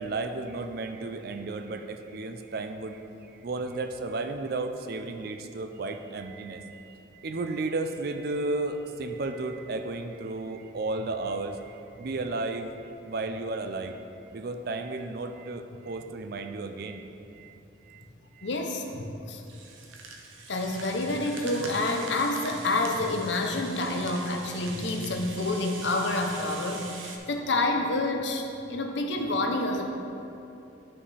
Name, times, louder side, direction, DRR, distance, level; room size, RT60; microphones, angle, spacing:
voice 1, 0.0-14.0 14.3-17.1 17.3-17.5 17.9-18.0 18.3-18.5, right 2 dB, 50° right, 7 dB, 0.4 m, -33 dB
voice 2, 18.4-19.4 20.5-29.9, left 2 dB, 65° left, 3 dB, 0.7 m, -28 dB
Rattle (instrument), 19.5-27.2, right 4 dB, 85° right, 0.7 m, -43 dB
9.6 x 5.4 x 3.3 m, 2.8 s
head